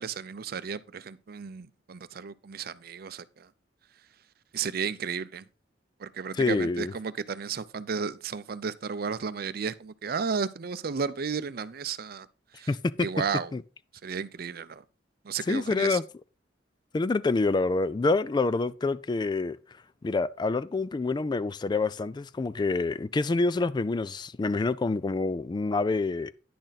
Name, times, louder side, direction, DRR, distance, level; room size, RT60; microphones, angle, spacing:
voice 1, 0.0-3.5 4.5-5.5 6.0-12.3 12.5-12.7 13.0-13.5 14.0-14.8 15.2-16.0, right 6 dB, 55° right, 0.5 m, -33 dB
voice 2, 6.4-6.9 12.7-13.1 13.5-13.6 15.5-16.0 16.9-19.6 20.0-26.3, left 3 dB, 25° left, 0.3 m, -27 dB
10.0 x 6.5 x 4.0 m
head